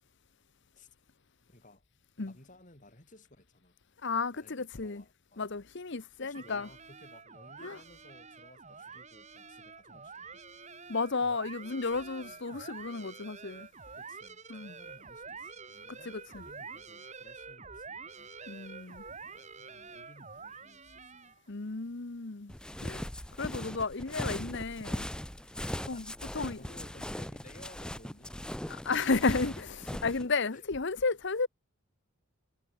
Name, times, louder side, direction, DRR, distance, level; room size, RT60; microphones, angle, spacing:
voice 1, 1.5-1.8 2.2-3.7 4.3-5.6 6.2-10.5 12.2-12.4 14.0-18.3 19.2-21.3 25.6-29.2 30.5-30.7, left 1 dB, 35° left, 4.8 m, -57 dB
voice 2, 4.0-5.0 5.4-6.7 7.6-7.8 10.9-13.7 14.5-14.7 15.9-16.4 18.5-19.0 21.5-22.5 22.8-23.1 23.4-25.1 25.9-26.0 26.3-26.6 28.7-29.7 30.0-31.5, left 4 dB, 55° left, 0.9 m, -33 dB
sound 1, 6.3-21.5, right 5 dB, 30° right, 3.7 m, -48 dB
sound 2, 22.5-30.2, equal, 5° left, 0.6 m, -39 dB
head